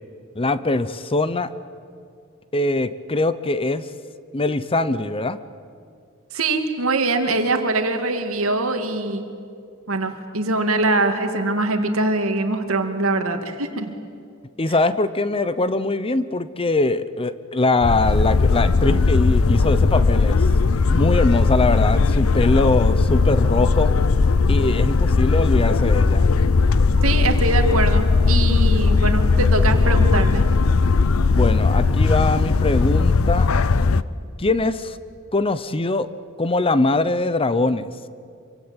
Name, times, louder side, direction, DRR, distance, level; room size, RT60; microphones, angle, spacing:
voice 1, 0.4-1.5 2.5-3.9 4.3-5.4 14.6-20.4 20.8-23.9 24.5-26.3 31.3-33.5 34.4-35.0 35.3-36.1 36.4-37.9, left 2 dB, 25° left, 14 dB, 0.8 m, -22 dB
voice 2, 6.3-9.2 9.9-13.9 27.0-30.4, right 2 dB, 75° right, 6 dB, 2.5 m, -23 dB
sound 1, 17.8-34.0, left 4 dB, 80° left, 0.7 m, -18 dB
26.5 x 24.5 x 8.9 m, 2.3 s
head